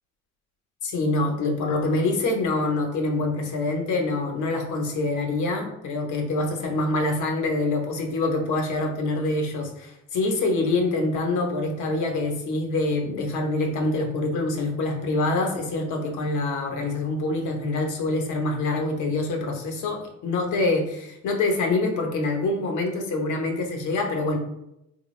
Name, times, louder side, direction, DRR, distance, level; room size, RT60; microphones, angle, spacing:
voice 1, 0.8-24.4, left 2 dB, 80° left, 3 dB, 0.8 m, -25 dB
3.8 x 2.2 x 3.1 m, 0.84 s
cardioid pair, 90°, 30 cm